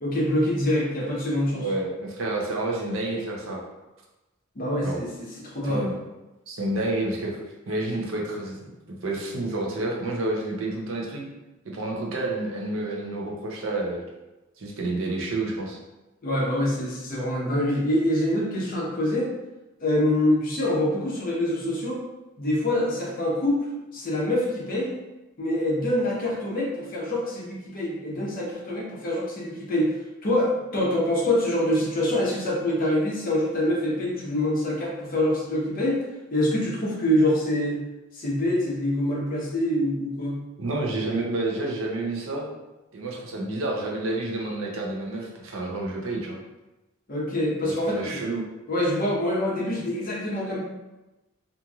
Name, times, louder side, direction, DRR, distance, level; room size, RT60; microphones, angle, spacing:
voice 1, 0.0-1.6 4.6-5.1 5.5-5.9 16.2-19.3 19.8-22.0 22.4-24.9 25.4-29.9 30.2-36.0 36.3-37.8 38.1-40.4 47.1-48.2 48.7-50.6, left 1 dB, 45° left, -4 dB, 0.7 m, -25 dB
voice 2, 1.3-3.6 4.8-5.0 5.6-6.0 6.5-7.4 7.7-11.2 11.6-14.0 14.6-15.8 40.6-42.5 42.9-46.4 47.6-48.4, right 2 dB, 75° right, -1 dB, 0.6 m, -29 dB
2.9 x 2.5 x 2.3 m, 1.0 s
head